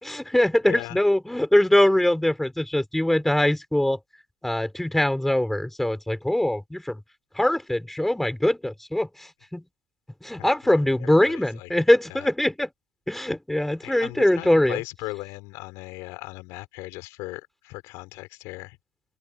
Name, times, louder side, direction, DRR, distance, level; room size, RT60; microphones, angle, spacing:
voice 1, 0.0-4.0 4.4-7.0 7.4-9.1 9.5-9.6 10.2-12.7 13.1-14.8, left 1 dB, 5° left, 4.8 m, -22 dB
voice 2, 0.7-1.0 10.4-10.5 10.9-11.7 12.1-12.3 13.8-18.8, left 23 dB, 65° left, 4.5 m, -38 dB
open air
supercardioid pair, 100°, 6 cm